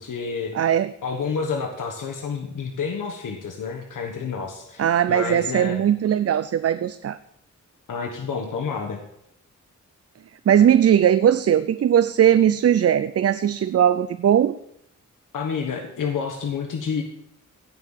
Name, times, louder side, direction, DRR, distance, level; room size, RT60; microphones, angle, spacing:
voice 1, 0.0-0.5 1.0-5.8 7.9-9.0 15.3-17.0, left 5 dB, 90° left, 2 dB, 1.4 m, -29 dB
voice 2, 0.5-0.9 4.8-7.2 10.5-14.5, right 9 dB, 50° right, 14 dB, 0.4 m, -19 dB
17.0 x 5.7 x 6.5 m, 0.74 s
wide cardioid pair, 100°, 31 cm